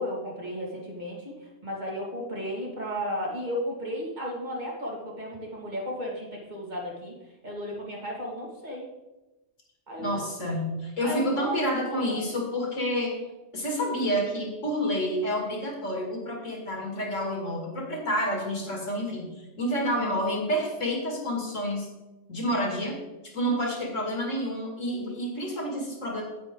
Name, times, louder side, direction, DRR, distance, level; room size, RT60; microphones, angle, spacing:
voice 1, 0.0-7.2 7.4-8.9 9.9-10.2 11.0-11.5 11.8-12.2 19.8-20.2, equal, 35° right, -3 dB, 2.3 m, -34 dB
voice 2, 10.0-13.2 13.5-21.9 22.3-23.0 23.3-26.2, equal, 85° left, 0 dB, 2.7 m, -29 dB
9.4 x 8.9 x 3.8 m, 1.0 s
omnidirectional pair, 1.3 m